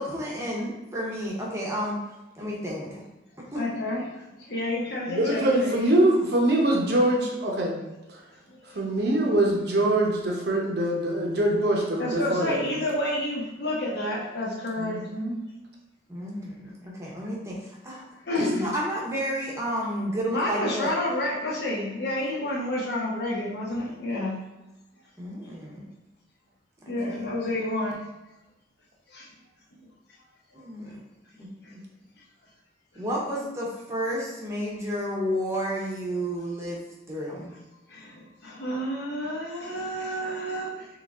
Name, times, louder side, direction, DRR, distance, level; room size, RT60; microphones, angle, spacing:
voice 1, 0.0-2.0 2.4-3.0 3.5-3.6 16.1-18.0 18.4-20.9 25.2-25.9 26.9-27.2 30.5-30.9 31.4-31.8 32.9-36.8 37.1-37.5, equal, 15° right, -4 dB, 0.9 m, -31 dB
voice 2, 3.5-5.8 8.5-8.8 12.0-15.0 18.3-18.7 20.3-24.4 26.9-28.0 29.1-29.3 37.9-40.9, left 1 dB, 55° left, -3 dB, 0.9 m, -30 dB
voice 3, 5.1-7.8 8.7-12.6 14.8-15.4, right 1 dB, 55° right, -1 dB, 0.8 m, -23 dB
3.7 x 3.1 x 3.6 m, 1.0 s
head